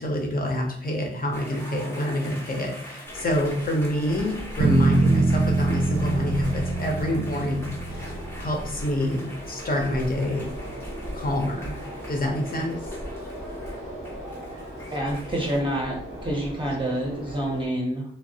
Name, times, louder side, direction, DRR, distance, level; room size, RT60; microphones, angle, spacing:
voice 1, 0.0-8.1 8.4-10.5 11.1-11.8 12.1-12.8, left 1 dB, 45° left, 1 dB, 0.7 m, -27 dB
sound 1, 1.3-15.6, equal, 10° left, 0.8 m, -44 dB
sound 2, 3.0-17.7, equal, 90° left, 1.2 m, -38 dB
sound 3, 4.6-8.7, right 3 dB, 75° right, 0.4 m, -24 dB
voice 2, 14.9-16.0 16.2-18.0, right 1 dB, 25° right, -2 dB, 0.6 m, -27 dB
3.1 x 2.0 x 2.7 m, 0.67 s
cardioid pair, 65°, 21 cm